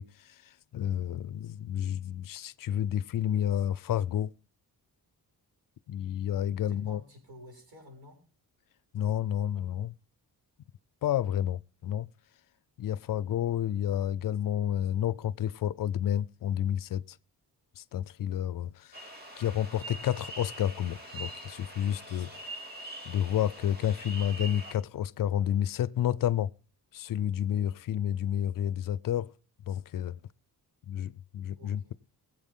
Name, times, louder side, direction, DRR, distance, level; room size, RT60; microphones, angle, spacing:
voice 1, 0.0-4.3 5.9-7.0 8.9-9.9 11.0-12.1 12.8-17.2 17.8-19.1 19.4-22.5 23.0-26.5 26.9-29.3 29.7-30.2 30.9-31.9, left 10 dB, 60° left, 0.5 m, -30 dB
voice 2, 6.7-8.2 23.7-23.8 31.6-32.0, left 1 dB, 75° right, 6.7 m, -51 dB
sound 1, 18.9-24.8, right 1 dB, 25° right, 2.1 m, -43 dB
22.0 x 7.9 x 3.6 m
wide cardioid pair, 165°, 38 cm